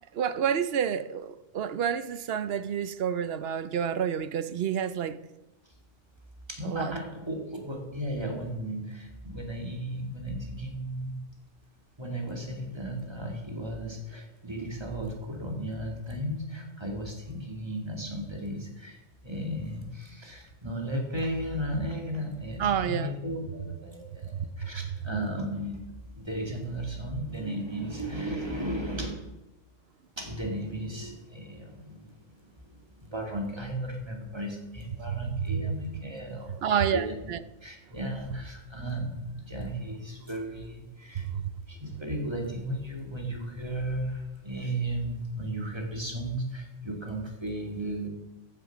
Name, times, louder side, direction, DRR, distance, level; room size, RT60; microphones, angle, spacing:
voice 1, 0.1-5.2 6.6-6.9 22.6-23.1 35.5-35.6 36.6-37.4 41.2-41.5, right 8 dB, 60° right, 0.8 m, -29 dB
voice 2, 6.5-11.2 12.0-19.0 19.2-25.8 26.1-29.1 30.2-37.3 37.6-41.3 41.7-48.1, right 1 dB, 20° right, 2.4 m, -35 dB
14.5 x 7.3 x 6.0 m
omnidirectional pair, 1.2 m